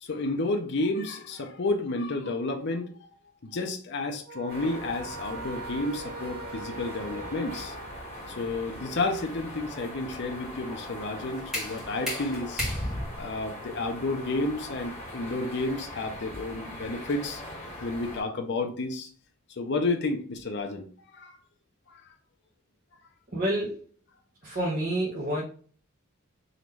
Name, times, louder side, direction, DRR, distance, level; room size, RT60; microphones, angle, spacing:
voice 1, 0.0-3.1 3.4-7.7 8.4-12.7 13.2-17.4 17.8-19.1 19.5-21.3 21.9-22.0 24.5-24.6, left 2 dB, 50° left, 0.6 m, -31 dB
sound 1, 4.3-8.7, right 3 dB, 85° right, 0.6 m, -42 dB
sound 2, 4.5-18.2, left 1 dB, 15° left, 1.9 m, -41 dB
sound 3, 10.8-16.6, left 1 dB, ahead, 1.4 m, -36 dB
voice 2, 23.3-23.9 24.4-25.4, right 1 dB, 40° right, 1.0 m, -28 dB
3.8 x 3.0 x 3.2 m
head